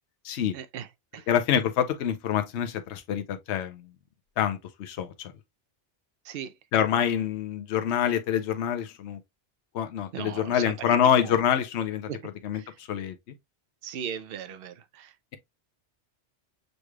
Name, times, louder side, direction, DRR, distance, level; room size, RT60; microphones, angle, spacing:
voice 1, 0.5-0.9 1.1-1.2 6.3-6.5 10.1-11.0 12.1-12.2 12.5-12.7 13.8-15.1, right 8 dB, 60° right, 0.7 m, -37 dB
voice 2, 1.3-3.9 4.4-5.3 6.7-9.2 9.7-13.1, left 9 dB, 75° left, 0.9 m, -26 dB
6.5 x 3.2 x 2.2 m
omnidirectional pair, 1.2 m